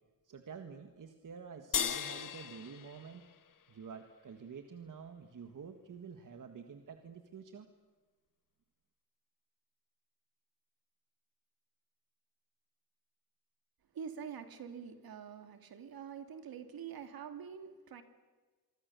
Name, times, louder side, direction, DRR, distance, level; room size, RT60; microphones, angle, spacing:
voice 1, 0.2-3.3 3.7-7.7, right 6 dB, 60° right, 6 dB, 1.8 m, -49 dB
sound 1, 1.7-4.3, left 8 dB, 60° left, 1.4 m, -38 dB
voice 2, 13.9-18.0, right 7 dB, 80° right, 7 dB, 2.5 m, -46 dB
25.5 x 24.0 x 6.9 m, 1.3 s
cardioid pair, 90°, 36 cm